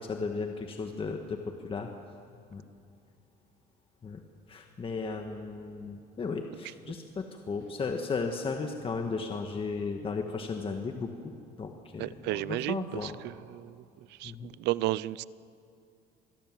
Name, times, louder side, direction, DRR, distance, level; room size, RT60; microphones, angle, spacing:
voice 1, 0.0-1.9 2.5-2.6 4.0-4.2 4.5-11.3 11.6-13.2 14.2-14.5, left 4 dB, 30° left, 4 dB, 1.7 m, -35 dB
voice 2, 12.0-13.1 13.5-13.7 14.2-15.2, right 17 dB, 85° right, 20 dB, 0.5 m, -32 dB
26.0 x 20.5 x 7.6 m, 2.4 s
cardioid pair, 110°, 17 cm